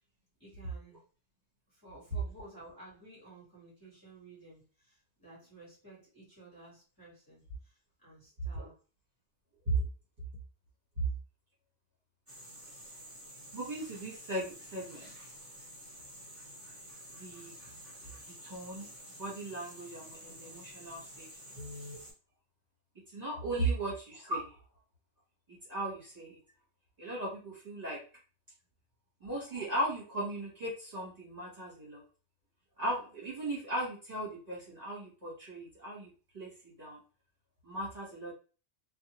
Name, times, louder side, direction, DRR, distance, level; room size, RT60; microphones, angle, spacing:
voice 1, 0.4-1.0 1.7-8.8, right 2 dB, 20° left, -7 dB, 1.3 m, -54 dB
sound 1, 12.3-22.1, equal, 15° right, 1.5 m, -50 dB
voice 2, 13.5-15.1 17.1-17.7 18.3-21.3 21.5-22.0 23.1-24.5 25.7-26.4 27.0-28.0 29.2-32.0 32.8-36.1 36.3-37.0 37.6-38.3, right 1 dB, 35° right, -7 dB, 1.3 m, -37 dB
2.5 x 2.3 x 2.9 m, 0.36 s
omnidirectional pair, 1.2 m